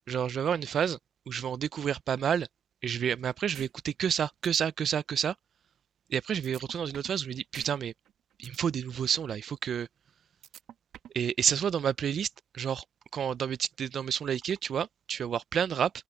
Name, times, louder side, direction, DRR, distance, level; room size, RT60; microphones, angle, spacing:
voice 1, 0.1-1.0 1.3-2.5 2.8-5.3 6.1-7.9 8.4-9.9 11.1-12.3 12.5-12.8 13.1-15.9, right 8 dB, 60° right, 0.6 m, -30 dB
sound 1, 3.5-3.7 4.1-4.2 4.4-4.6 6.4-7.2 7.5-7.7 8.0-8.6 10.4-11.2, right 11 dB, 80° right, 1.6 m, -47 dB
open air
cardioid pair, 90°, 0 cm